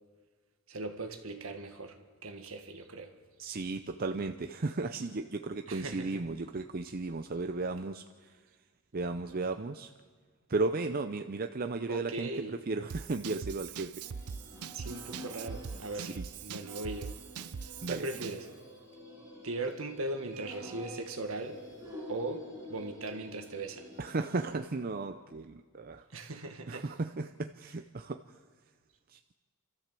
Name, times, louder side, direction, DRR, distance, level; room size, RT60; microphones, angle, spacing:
voice 1, 0.7-3.1 5.7-6.2 11.9-12.5 14.7-17.2 17.9-18.5 19.4-21.6 22.1-23.9 26.1-26.9, right 2 dB, 70° right, 1.8 m, -39 dB
voice 2, 3.4-8.3 8.9-9.9 10.5-14.0 15.9-16.3 17.8-18.1 24.0-26.3 26.7-28.2 29.1-29.3, right 3 dB, 40° right, 0.6 m, -35 dB
Drum kit / Drum, 12.9-18.5, right 6 dB, 85° right, 0.6 m, -42 dB
sound 1, 14.0-24.5, left 1 dB, 15° right, 6.6 m, -48 dB
28.5 x 13.5 x 7.6 m
head